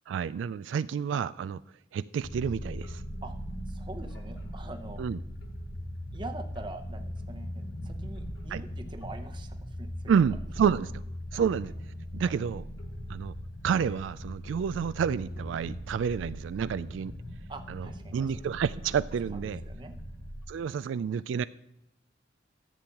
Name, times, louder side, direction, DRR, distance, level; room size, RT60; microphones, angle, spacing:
voice 1, 0.1-1.6 1.9-3.0 5.0-5.2 8.5-8.6 10.1-10.9 11.3-11.7 12.1-12.7 13.1-13.3 13.6-17.1 17.7-19.6 20.5-21.4, right 7 dB, 90° right, 16 dB, 0.3 m, -29 dB
sound 1, 2.2-20.5, equal, 65° left, 1.3 m, -40 dB
voice 2, 3.7-5.0 6.1-10.2 11.3-11.5 12.2-12.4 17.5-18.3 19.3-20.0, right 2 dB, 25° right, 5 dB, 0.8 m, -44 dB
13.5 x 7.9 x 2.9 m, 0.83 s
head